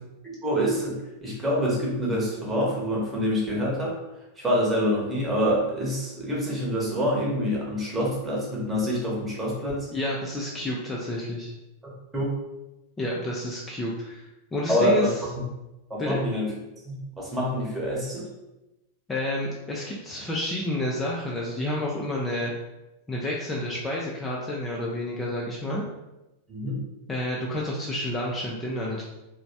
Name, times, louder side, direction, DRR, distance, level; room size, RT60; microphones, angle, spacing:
voice 1, 0.2-3.9 4.4-9.9 12.1-12.4 14.7-15.3 15.9-16.5 16.9-18.3 26.5-26.8, equal, 10° right, -5 dB, 1.0 m, -26 dB
voice 2, 9.9-11.5 13.0-15.2 16.0-16.2 19.1-22.5 23.1-25.8 27.1-29.0, left 1 dB, 15° left, -3 dB, 0.4 m, -30 dB
3.0 x 2.1 x 2.7 m, 0.98 s
figure-of-eight pair, 90°, 0 cm